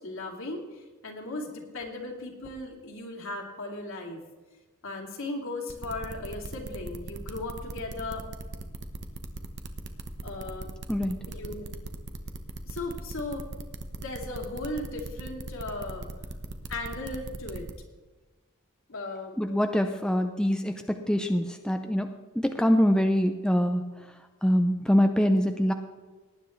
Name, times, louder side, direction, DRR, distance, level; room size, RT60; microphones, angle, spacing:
voice 1, 0.0-4.2 4.8-8.3 10.2-10.7 11.3-11.7 12.7-13.5 13.9-16.1 16.7-17.7 18.9-19.4 20.8-20.9, left 2 dB, 65° left, 1 dB, 2.6 m, -37 dB
sound 1, 5.7-17.7, right 2 dB, 55° right, 1.0 m, -39 dB
voice 2, 19.4-22.1 22.4-23.8 24.4-25.7, equal, 5° left, 5 dB, 0.6 m, -24 dB
18.5 x 10.0 x 3.2 m, 1.3 s
head